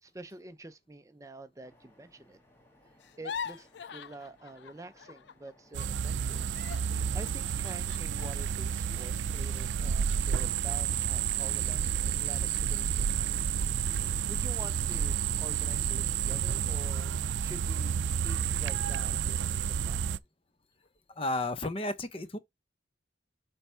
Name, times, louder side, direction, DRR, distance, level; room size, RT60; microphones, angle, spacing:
voice 1, 0.0-2.4 3.2-6.6 7.1-13.3 14.3-17.1 17.4-18.0 18.2-20.2, right 2 dB, 20° right, 0.5 m, -48 dB
sound 1, 1.6-16.5, left 1 dB, 15° left, 1.9 m, -64 dB
sound 2, 3.0-5.5 5.8-10.2 10.6-10.8 11.2-11.7, left 7 dB, 75° left, 0.4 m, -45 dB
sound 3, 5.7-20.2, right 8 dB, 90° right, 0.4 m, -30 dB
voice 2, 21.2-22.4, left 2 dB, 30° left, 0.7 m, -32 dB
8.7 x 3.4 x 5.5 m
head